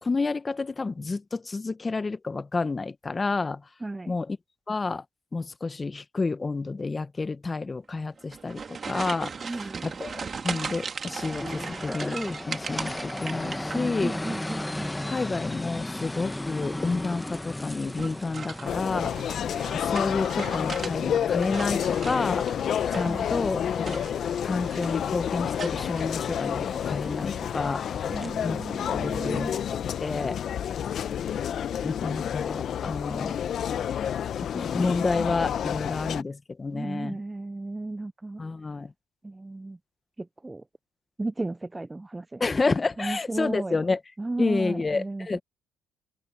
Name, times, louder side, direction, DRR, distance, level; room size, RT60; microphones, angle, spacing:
voice 1, 0.0-3.6 4.1-4.4 4.7-5.0 5.3-9.5 9.8-14.1 15.1-19.1 19.7-22.4 22.9-24.1 24.4-27.9 28.4-29.6 30.0-30.4 31.8-33.4 34.4-37.2 38.4-38.9 42.4-44.0 44.4-45.4, left 3 dB, 25° left, 1.4 m, -30 dB
voice 2, 3.8-4.1 9.4-9.9 13.7-15.1 23.0-23.3 28.1-29.5 32.0-32.1 36.7-38.4 39.2-39.8 40.2-40.6 41.2-42.4 43.0-43.8 44.2-45.4, right 2 dB, 15° right, 0.5 m, -34 dB
sound 1, 8.2-14.2 14.5-15.1 16.5-16.9 17.9-21.0 21.3-23.3 23.8-24.4 24.6-25.1 25.6-26.0, right 5 dB, 40° right, 2.4 m, -38 dB
sound 2, 11.2-28.3, left 1 dB, 10° left, 1.2 m, -37 dB
sound 3, 18.7-36.2, left 9 dB, 60° left, 1.1 m, -29 dB
supercardioid pair, 75°, 0 cm